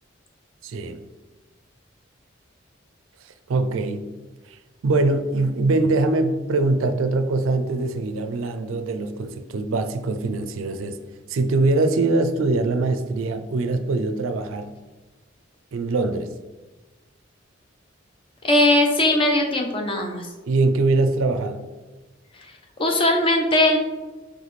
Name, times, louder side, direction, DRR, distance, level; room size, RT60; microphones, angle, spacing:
voice 1, 0.6-1.0 3.2-4.1 4.5-4.6 4.8-11.0 11.3-14.7 15.7-16.3 20.5-21.7, right 2 dB, 90° right, 9 dB, 0.4 m, -23 dB
voice 2, 18.4-20.3 22.8-23.8, left 1 dB, 25° left, 2 dB, 0.5 m, -19 dB
4.1 x 3.3 x 3.1 m, 1.2 s
head